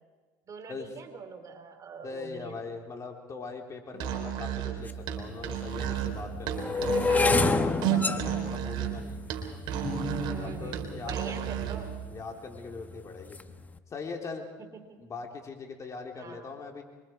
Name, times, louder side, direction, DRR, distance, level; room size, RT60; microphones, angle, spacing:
voice 1, 0.5-2.6 6.8-7.4 10.3-11.9 14.6-15.0 16.2-16.5, right 5 dB, 40° right, 6 dB, 3.6 m, -44 dB
voice 2, 2.0-9.2 10.4-11.8 12.1-13.4 13.9-14.4 15.0-16.8, left 4 dB, 35° left, 2 dB, 3.7 m, -41 dB
Musical instrument, 3.9-11.9, right 10 dB, 65° right, 3.5 m, -32 dB
sound 1, 4.9-5.0 5.7-11.9 12.5-12.9 13.2-13.5, left 3 dB, 20° left, 1.3 m, -29 dB
26.0 x 24.0 x 4.7 m, 1.3 s
supercardioid pair, 85°, 9 cm